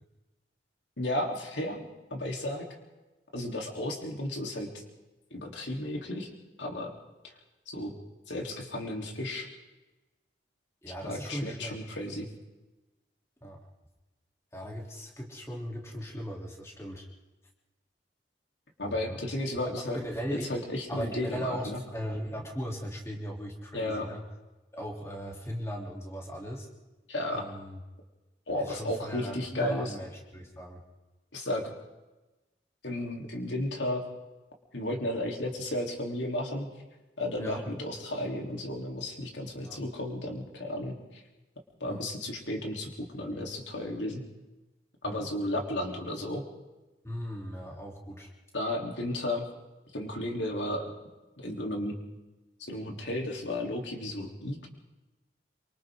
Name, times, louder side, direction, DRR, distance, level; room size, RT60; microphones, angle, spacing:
voice 1, 1.0-2.7 3.3-4.7 5.3-6.3 6.6-6.9 7.2-7.3 7.7-7.9 8.3-9.5 11.0-12.3 18.8-20.0 20.5-21.8 23.7-24.1 27.1-27.4 28.5-29.9 31.3-31.7 32.8-34.0 34.7-36.7 37.2-41.2 41.8-44.2 45.0-46.4 48.5-49.4 49.9-50.9 51.4-52.0 52.6-54.7, left 1 dB, 90° left, 1 dB, 3.7 m, -33 dB
voice 2, 10.8-11.8 13.4-13.6 14.5-17.1 18.8-19.2 19.9-20.4 20.9-24.2 24.7-26.7 27.3-27.8 28.6-30.8 37.4-37.6 39.6-39.8 41.8-42.0 45.0-45.2 47.0-48.3, equal, 15° left, -1 dB, 3.4 m, -38 dB
27.0 x 25.0 x 3.9 m, 1.1 s
head